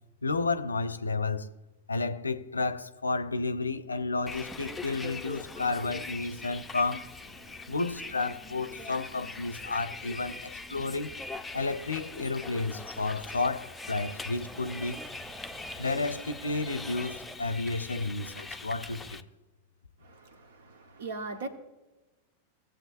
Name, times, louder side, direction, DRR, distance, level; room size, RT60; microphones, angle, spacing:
voice 1, 0.2-1.5 1.9-7.1 7.7-11.1 11.5-15.0 15.8-19.2, left 3 dB, 80° left, 0.5 m, -31 dB
Bus, 4.3-19.2, left 3 dB, 10° left, 0.6 m, -42 dB
sound 1, 4.5-18.5, right 1 dB, 45° right, 1.3 m, -58 dB
sound 2, 11.2-17.4, right 1 dB, 20° right, 1.9 m, -49 dB
voice 2, 20.0-21.5, right 3 dB, 60° right, 1.1 m, -40 dB
17.5 x 7.5 x 2.6 m
figure-of-eight pair, 90°, 0 cm